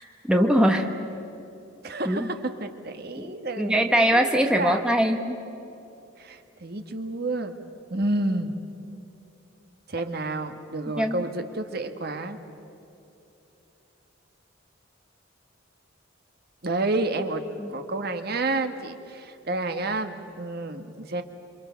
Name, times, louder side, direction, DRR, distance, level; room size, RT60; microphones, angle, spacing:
voice 1, 0.2-0.9 2.0-2.3 3.2-3.3 3.6-5.4 11.0-11.2 17.6-17.7, equal, 5° right, 4 dB, 1.2 m, -22 dB
voice 2, 1.8-4.8 6.2-7.6 7.9-8.5 9.9-12.4 16.6-17.4 17.7-21.2, right 2 dB, 55° right, 7 dB, 1.5 m, -30 dB
27.5 x 25.0 x 7.0 m, 2.9 s
head